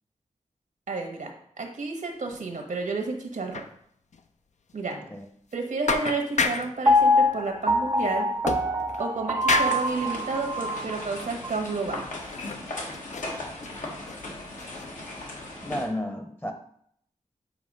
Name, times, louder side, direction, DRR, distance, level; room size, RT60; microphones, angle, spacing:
voice 1, 0.9-3.7 4.7-5.0 5.5-8.3 9.0-12.0, right 3 dB, 80° right, 3 dB, 1.2 m, -31 dB
sound 1, 2.3-2.7 2.9-3.0 3.5-3.7 4.1-4.2 4.7-4.8 5.5-5.6 5.9-6.8 8.5-9.1 9.5-9.9 10.6-10.8 11.3-11.4 12.2-12.7 12.9-14.2 14.6-14.9, left 4 dB, 65° left, 0.5 m, -30 dB
Piano, 6.9-10.9 11.4-11.5, left 1 dB, 20° right, 0.5 m, -24 dB
sound 2, 9.5-15.9, left 2 dB, 80° left, 1.6 m, -38 dB
voice 2, 15.6-16.5, left 1 dB, 15° left, 5 dB, 0.8 m, -32 dB
7.4 x 2.9 x 5.3 m, 0.66 s
wide cardioid pair, 95°, 13 cm